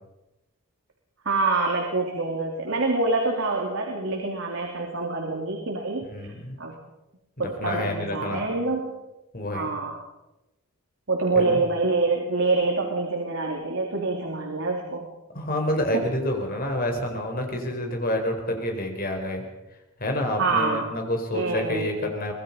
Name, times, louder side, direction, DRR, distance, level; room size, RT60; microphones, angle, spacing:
voice 1, 1.2-6.3 6.6-6.8 7.4-8.9 9.5-10.0 11.1-15.1 15.9-16.1 20.4-20.9 21.3-21.9, right 3 dB, 65° right, 0 dB, 3.2 m, -26 dB
voice 2, 6.1-6.6 7.4-8.5 9.3-9.7 11.3-11.6 15.3-19.4 20.0-22.3, left 1 dB, 45° left, 3 dB, 4.4 m, -28 dB
24.0 x 20.0 x 5.5 m, 0.96 s
head